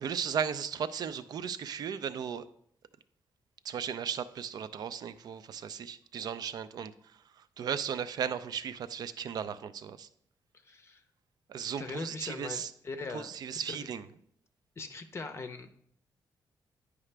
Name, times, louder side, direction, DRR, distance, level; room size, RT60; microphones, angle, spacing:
voice 1, 0.0-2.5 3.6-6.9 7.6-10.1 11.5-12.7 13.1-14.1, right 7 dB, 60° right, 14 dB, 0.4 m, -36 dB
voice 2, 10.6-11.0 11.8-13.3 14.8-15.7, left 3 dB, 35° left, 7 dB, 0.6 m, -40 dB
9.7 x 4.9 x 3.3 m, 0.68 s
cardioid pair, 110°, 8 cm